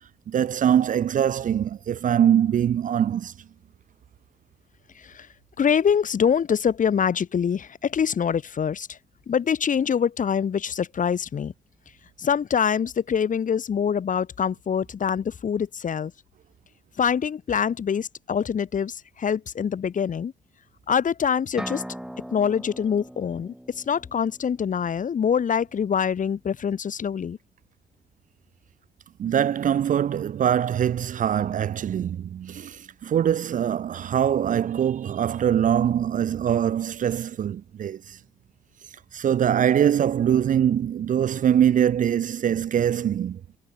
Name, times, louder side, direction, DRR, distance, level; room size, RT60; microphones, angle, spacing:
voice 1, 0.3-3.3 29.2-38.2 39.1-43.4, right 9 dB, 40° right, 0.6 m, -23 dB
voice 2, 4.9-5.3 5.6-9.0 9.3-11.5 12.2-16.1 17.0-20.3 20.9-21.8 22.3-27.4, left 7 dB, 40° left, 1.4 m, -24 dB
sound 1, 21.6-25.3, equal, 5° right, 3.8 m, -40 dB
figure-of-eight pair, 40°, 20 cm